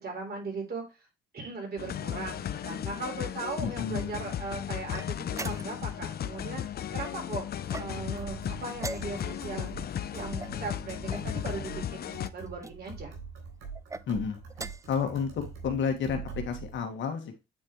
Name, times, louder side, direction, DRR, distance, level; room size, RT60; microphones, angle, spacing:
voice 1, 0.0-0.8 1.3-7.5 7.8-9.7 10.1-13.1, right 3 dB, 50° right, 1 dB, 3.7 m, -38 dB
sound 1, 1.8-12.3, left 10 dB, 50° left, 0.6 m, -35 dB
voice 2, 3.6-4.2 14.1-14.4 14.9-17.4, left 6 dB, 70° left, 5 dB, 1.8 m, -31 dB
sound 2, 4.9-6.0 7.6-8.2 8.8-9.5 10.4-11.3 12.2-12.8 13.7-14.1 14.5-15.0, right 3 dB, 15° right, 0.4 m, -41 dB
sound 3, 7.8-16.8, right 5 dB, 85° right, 3.7 m, -44 dB
8.8 x 4.3 x 3.1 m, 0.26 s
cardioid pair, 90°, 20 cm